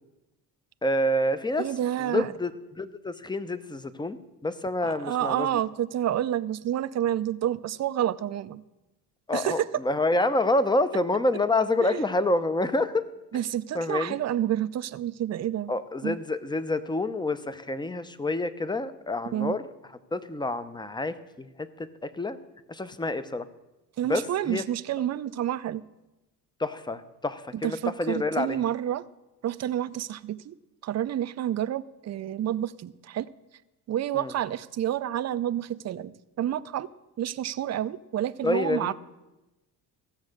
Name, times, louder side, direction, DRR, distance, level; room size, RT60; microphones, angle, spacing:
voice 1, 0.8-1.7 2.0-4.2 4.4-5.5 9.3-13.1 13.7-14.2 15.7-19.6 20.1-22.4 22.7-23.5 24.0-24.6 26.6-28.6 34.1-34.3 38.4-38.9, left 2 dB, 10° left, 13 dB, 0.7 m, -28 dB
voice 2, 1.6-2.3 4.8-8.6 9.3-9.8 11.8-12.0 13.3-15.7 16.0-16.2 19.3-19.6 24.0-25.8 27.6-29.0 29.4-30.6 30.8-33.3 33.9-36.9 37.2-38.9, right 11 dB, 40° right, 14 dB, 0.5 m, -29 dB
15.0 x 7.2 x 6.5 m, 1.0 s
cardioid pair, 95°, 43 cm